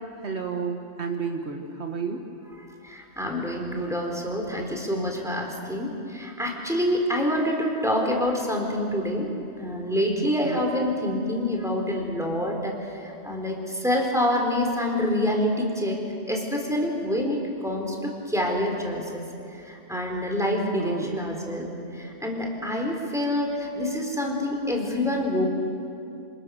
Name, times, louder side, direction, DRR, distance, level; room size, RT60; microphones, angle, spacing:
voice 1, 0.2-2.2 10.2-10.6 20.8-21.2, right 5 dB, 65° right, 2 dB, 1.8 m, -31 dB
voice 2, 2.5-9.3 9.6-12.7 13.0-16.0 16.3-19.2 19.7-25.4, left 1 dB, ahead, 0 dB, 4.0 m, -27 dB
27.0 x 27.0 x 6.6 m, 2.6 s
omnidirectional pair, 1.2 m